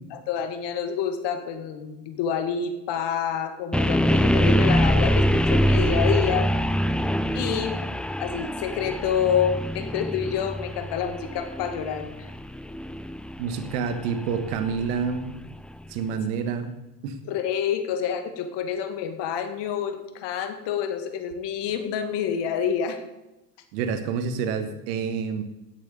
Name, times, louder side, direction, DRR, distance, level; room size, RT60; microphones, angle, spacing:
voice 1, 0.1-6.5 7.3-7.8 8.2-12.3 17.3-23.0, left 8 dB, 60° left, 8 dB, 2.2 m, -28 dB
sound 1, 3.7-15.7, equal, ahead, 0.4 m, -24 dB
voice 2, 13.4-15.3 15.9-16.7 17.0-17.2 23.7-25.4, right 6 dB, 75° right, 9 dB, 1.5 m, -28 dB
13.0 x 8.4 x 5.4 m, 0.99 s
hypercardioid pair, 85°, 48 cm